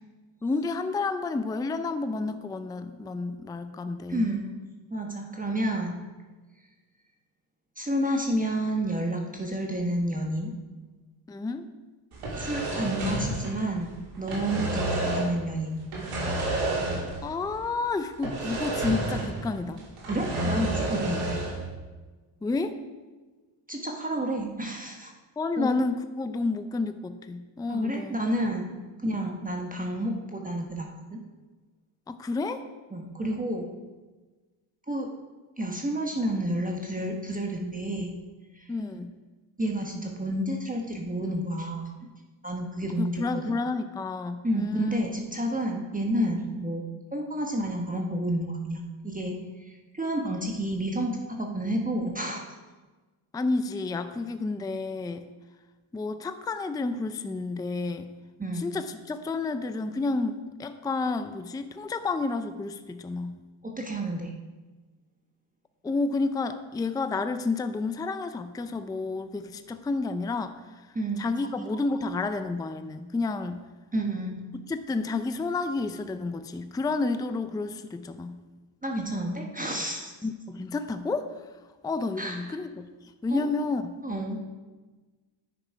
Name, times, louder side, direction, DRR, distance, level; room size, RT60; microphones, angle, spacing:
voice 1, 0.4-4.3 11.3-11.7 17.2-19.8 21.1-21.3 22.4-22.8 25.4-28.2 32.1-32.6 38.7-39.1 43.0-45.0 53.3-55.3 55.9-58.1 58.5-63.4 65.8-70.9 71.2-73.6 74.7-78.4 80.2-81.3 81.8-84.0, left 3 dB, 10° left, 9 dB, 0.4 m, -30 dB
voice 2, 4.1-4.5 4.9-6.0 7.8-10.5 12.4-15.8 20.1-21.2 23.7-25.1 25.6-25.7 27.7-28.7 29.0-31.2 32.9-33.7 34.9-35.1 35.6-38.1 38.5-38.7 39.6-42.1 42.4-43.6 44.4-46.9 47.1-52.4 58.4-58.7 63.6-64.3 70.9-71.5 73.9-74.4 78.8-80.1 82.2-82.5 83.3-83.4 84.0-84.4, right 1 dB, 15° right, 1 dB, 1.1 m, -30 dB
sound 1, 12.1-13.9 14.1-15.4 15.9-17.3 17.5-17.6 18.2-19.5 19.8-21.6, right 1 dB, 85° right, 3.0 m, -30 dB
10.0 x 6.0 x 4.7 m, 1.3 s
cardioid pair, 95°, 50 cm